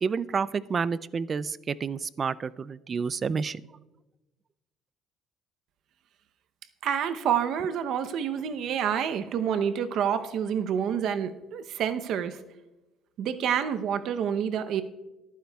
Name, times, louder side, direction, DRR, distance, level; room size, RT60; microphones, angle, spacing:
voice 1, 0.0-3.6, right 5 dB, 30° right, 18 dB, 0.3 m, -29 dB
voice 2, 6.8-12.4 13.2-14.8, right 8 dB, 60° right, 10 dB, 0.7 m, -28 dB
24.0 x 9.3 x 2.3 m, 1.1 s
cardioid pair, 125°, 0 cm